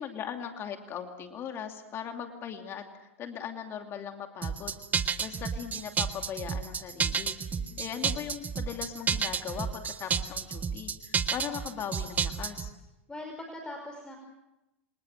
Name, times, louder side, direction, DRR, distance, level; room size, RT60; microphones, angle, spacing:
voice 1, 0.0-2.8 3.2-4.8 5.2-7.3 7.8-12.7, left 8 dB, 35° left, 5 dB, 2.6 m, -39 dB
sound 1, 4.4-12.7, right 6 dB, 25° right, 1.5 m, -31 dB
voice 2, 7.5-7.9 13.1-14.2, left 1 dB, 10° left, 3 dB, 5.3 m, -42 dB
28.5 x 26.5 x 6.5 m, 0.94 s
hypercardioid pair, 95°, 7 cm